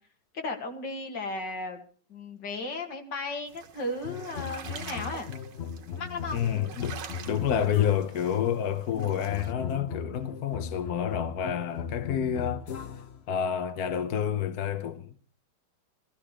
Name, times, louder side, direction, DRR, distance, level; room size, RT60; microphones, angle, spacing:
voice 1, 0.3-1.8 2.1-5.3 5.9-6.4, left 2 dB, 80° left, 2.8 m, -35 dB
sound 1, 3.5-9.5, right 7 dB, 90° right, 1.9 m, -46 dB
sound 2, 4.0-8.3 8.9-13.2, left 7 dB, 50° left, 0.8 m, -37 dB
voice 2, 6.3-7.0 7.3-12.7 13.3-15.1, left 9 dB, 65° left, 1.3 m, -29 dB
17.0 x 14.5 x 4.9 m
omnidirectional pair, 1.9 m